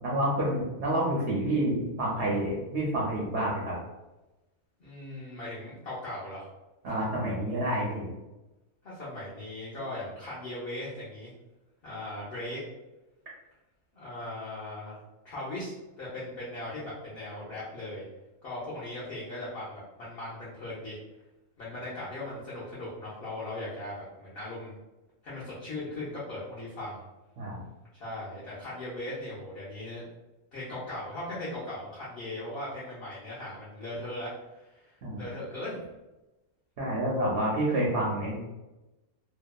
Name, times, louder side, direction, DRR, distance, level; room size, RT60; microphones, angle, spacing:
voice 1, 0.0-3.7 6.8-8.1 27.4-27.6 35.0-35.2 36.8-38.3, right 1 dB, 60° right, -5 dB, 0.8 m, -28 dB
voice 2, 4.8-6.5 8.8-11.3 11.8-12.6 13.9-15.0 15.2-18.0 18.4-21.0 21.6-24.8 25.2-27.0 27.9-30.0 30.5-35.8, left 1 dB, 50° left, -8 dB, 0.7 m, -38 dB
2.7 x 2.2 x 2.2 m, 1.0 s
omnidirectional pair, 1.5 m